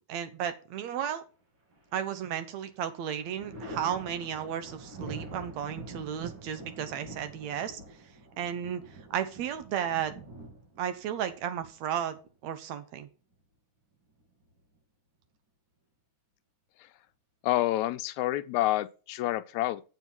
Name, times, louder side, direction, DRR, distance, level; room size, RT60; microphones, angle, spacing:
voice 1, 0.1-1.2 1.9-7.8 8.4-8.8 9.1-10.1 10.8-13.1, right 9 dB, 70° right, 2.2 m, -34 dB
Thunder, 1.7-2.5 2.9-12.4 13.9-14.8, right 2 dB, 40° right, 3.3 m, -46 dB
voice 2, 17.4-19.8, left 15 dB, 85° left, 1.9 m, -28 dB
8.1 x 7.9 x 4.6 m
omnidirectional pair, 3.3 m